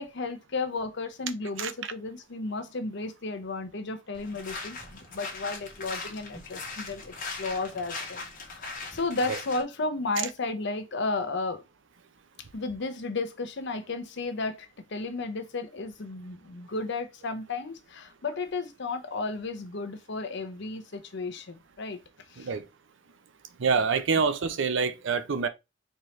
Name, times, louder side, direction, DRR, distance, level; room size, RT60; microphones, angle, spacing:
voice 1, 0.0-11.6 12.5-22.0 22.3-22.5 24.1-24.2, left 3 dB, 60° left, 0.7 m, -33 dB
sound 1, 4.1-9.6, left 3 dB, 45° left, 1.3 m, -39 dB
voice 2, 22.4-22.7 23.6-25.5, right 5 dB, 65° right, 0.5 m, -26 dB
4.3 x 2.9 x 3.2 m
head